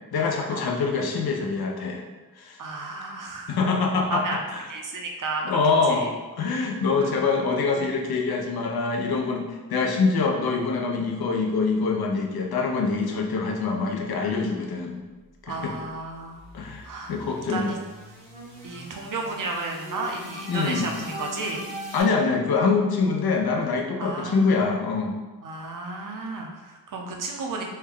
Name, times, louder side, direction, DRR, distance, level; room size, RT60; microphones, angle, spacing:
voice 1, 0.1-2.0 2.4-2.6 3.5-4.2 4.5-4.6 5.4-6.1 6.4-15.0 15.4-15.7 16.5-17.8 20.5-20.9 21.9-25.2, left 4 dB, 75° left, 1 dB, 0.6 m, -25 dB
voice 2, 2.6-3.6 4.1-4.4 4.7-5.6 5.9-6.1 7.0-7.1 15.5-16.4 16.8-17.8 18.6-21.7 24.0-24.5 25.4-27.6, right 3 dB, 55° right, 1 dB, 0.6 m, -33 dB
sound 1, 15.6-22.0, equal, 80° right, 1.5 m, -41 dB
3.2 x 2.1 x 3.6 m, 1.2 s
wide cardioid pair, 145°, 37 cm